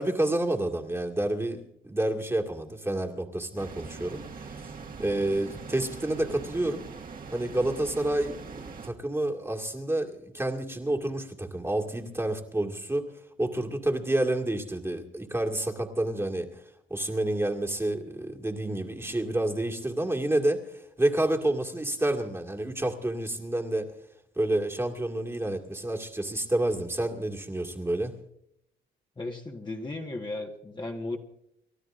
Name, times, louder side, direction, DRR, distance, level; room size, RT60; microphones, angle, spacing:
voice 1, 0.0-4.6 5.0-6.8 7.3-13.1 13.4-16.6 16.9-23.9 24.4-28.1, right 1 dB, 10° right, 2 dB, 2.0 m, -29 dB
sound 1, 3.6-8.9, right 5 dB, 45° right, 1.8 m, -42 dB
voice 2, 29.2-31.2, left 2 dB, 20° left, 1 dB, 1.5 m, -35 dB
30.0 x 12.5 x 2.6 m, 0.76 s
cardioid pair, 90°, 20 cm